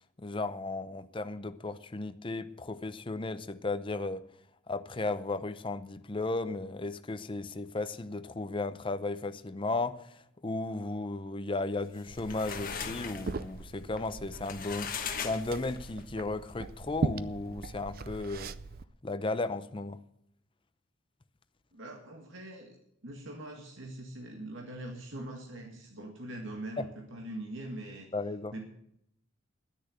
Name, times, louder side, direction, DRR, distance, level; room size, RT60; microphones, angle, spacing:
voice 1, 0.2-4.2 4.7-18.5 19.0-20.0 26.8-26.9 28.1-28.5, left 2 dB, 25° left, 0.6 m, -35 dB
sound 1, 11.9-16.0, left 7 dB, 45° left, 1.2 m, -40 dB
Liquid, 12.1-18.8, right 3 dB, 45° right, 0.5 m, -40 dB
voice 2, 21.7-22.8 23.0-28.1 28.5-28.7, right 1 dB, 65° right, 1.9 m, -42 dB
10.5 x 10.0 x 8.0 m
head